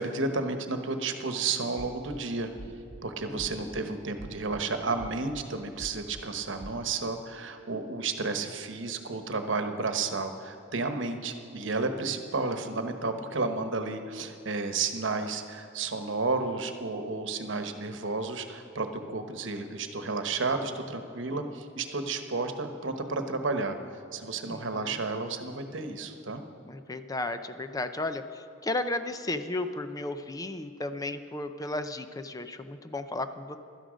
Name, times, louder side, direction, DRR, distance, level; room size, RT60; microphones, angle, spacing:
voice 1, 0.0-2.5 3.0-23.8 24.1-26.4, right 3 dB, 70° right, 7 dB, 1.1 m, -32 dB
sound 1, 1.8-2.2 2.6-3.0 3.4-3.8 4.2-4.6 5.0-5.4 5.8-6.2 6.6-6.8, right 1 dB, 50° right, 0.7 m, -44 dB
voice 2, 3.3-3.8 24.5-25.0 26.7-33.6, left 2 dB, 20° left, 9 dB, 0.5 m, -34 dB
16.5 x 12.5 x 5.1 m, 2.7 s
head